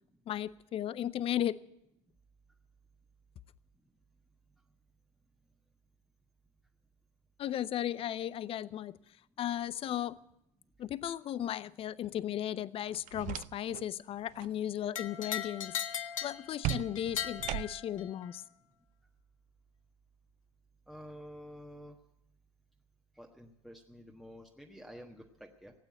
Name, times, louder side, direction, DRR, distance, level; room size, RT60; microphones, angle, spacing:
voice 1, 0.3-1.6 7.4-9.0 9.4-10.2 10.8-15.8 16.2-18.4, left 11 dB, 35° left, 20 dB, 0.5 m, -35 dB
sound 1, 12.9-13.9 14.2-14.6 16.6-18.0, right 17 dB, 50° right, 0.5 m, -38 dB
sound 2, 14.9-18.3, left 9 dB, 85° left, 0.6 m, -38 dB
voice 2, 20.9-22.0 23.2-25.7, equal, ahead, 0 dB, 1.4 m, -50 dB
17.0 x 8.8 x 9.2 m, 0.83 s
hypercardioid pair, 70°, 16 cm